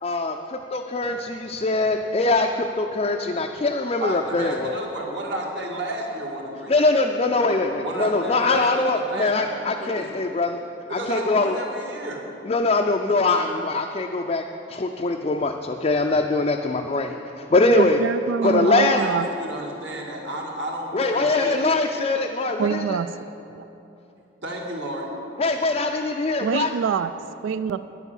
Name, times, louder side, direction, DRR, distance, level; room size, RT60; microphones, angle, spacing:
voice 1, 0.0-4.7 6.7-10.6 10.9-11.6 12.4-14.4 14.7-18.0 18.4-19.0 20.9-23.0 25.4-26.7, left 3 dB, 30° left, 2 dB, 0.4 m, -22 dB
voice 2, 4.0-6.9 7.4-10.3 10.9-12.2 17.6-17.7 18.4-21.6 24.4-25.1, right 1 dB, 65° right, -1 dB, 1.9 m, -32 dB
voice 3, 17.8-19.3 22.6-23.1 23.6-23.7 26.4-27.1 27.4-27.8, right 6 dB, 80° right, 13 dB, 0.3 m, -25 dB
10.0 x 8.2 x 7.1 m, 2.9 s
head